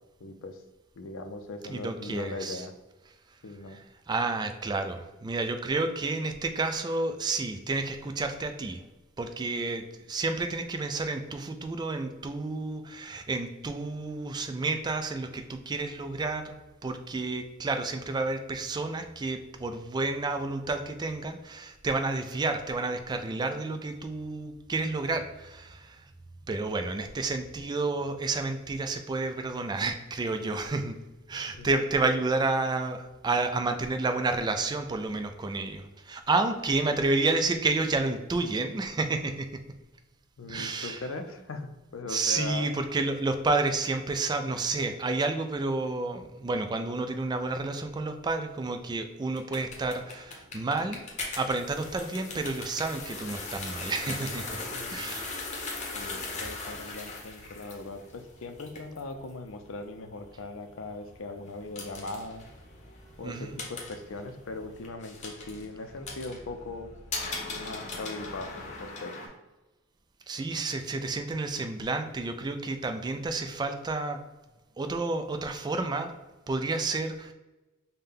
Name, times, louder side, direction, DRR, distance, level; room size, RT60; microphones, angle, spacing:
voice 1, 0.2-0.6 1.0-2.7 3.4-3.8 31.5-31.7 40.4-42.7 54.6-55.3 55.9-62.5 63.2-66.9 67.5-69.3, left 2 dB, 70° left, 7 dB, 0.5 m, -40 dB
voice 2, 1.7-2.6 4.1-8.8 9.2-26.1 26.5-31.0 31.3-39.6 40.5-41.0 42.1-51.0 51.4-54.6 54.9-55.5 63.2-63.6 70.3-74.2 74.8-76.1 76.5-77.3, right 3 dB, 20° right, 7 dB, 0.3 m, -30 dB
sound 1, 49.3-69.3, left 3 dB, 35° left, 0.8 m, -40 dB
5.5 x 2.2 x 3.5 m, 1.1 s
head